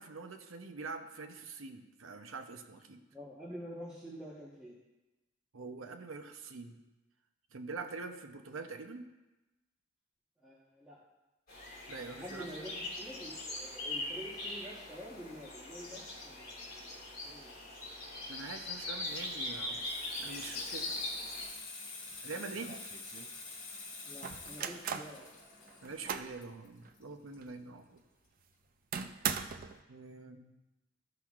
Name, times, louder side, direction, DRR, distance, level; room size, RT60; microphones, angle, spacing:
voice 1, 0.0-3.0 5.5-6.8 7.5-9.1 11.9-12.5 18.3-19.9 20.2-21.0 22.2-22.9 25.8-28.0 29.9-30.5, right 4 dB, 90° right, 7 dB, 0.7 m, -45 dB
voice 2, 3.1-4.8 10.4-11.0 12.2-16.9 17.2-17.5 24.0-25.3, equal, 5° right, -8 dB, 1.1 m, -47 dB
sound 1, 11.5-21.4, left 2 dB, 50° left, 2.6 m, -41 dB
Water tap faucet / Sink (filling or washing), 18.7-28.0 28.3-28.5, left 3 dB, 70° left, 2.3 m, -49 dB
sound 2, 22.1-22.2 22.5-23.3 24.2-25.2 25.7-26.4 26.9-27.0 27.4-27.5 28.9-29.8, right 7 dB, 45° right, 0.4 m, -38 dB
13.5 x 5.7 x 2.4 m, 1.1 s
head